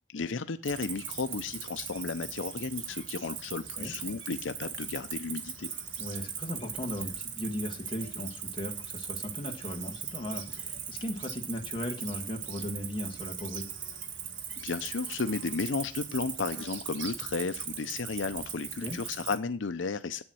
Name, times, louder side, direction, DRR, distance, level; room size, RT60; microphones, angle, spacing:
voice 1, 0.1-5.7 14.6-20.2, left 4 dB, 80° left, 10 dB, 0.6 m, -33 dB
Cricket, 0.6-19.4, right 7 dB, 85° right, 1.4 m, -39 dB
voice 2, 6.0-13.7 18.8-19.0, left 1 dB, 25° left, 1 dB, 1.7 m, -37 dB
8.8 x 7.1 x 7.7 m, 0.39 s
head